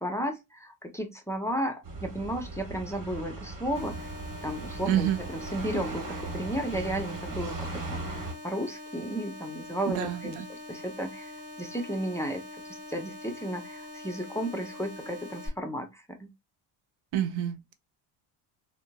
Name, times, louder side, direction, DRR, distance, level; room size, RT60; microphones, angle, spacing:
voice 1, 0.0-4.1 4.4-16.3, equal, 5° left, 0.5 m, -34 dB
sound 1, 1.8-8.3, right 2 dB, 45° right, 1.4 m, -38 dB
sound 2, 3.7-15.5, left 2 dB, 20° right, 2.0 m, -44 dB
voice 2, 4.9-5.2 9.9-10.5 17.1-17.7, right 11 dB, 75° right, 0.7 m, -28 dB
3.7 x 2.0 x 2.2 m
cardioid pair, 90°, 47 cm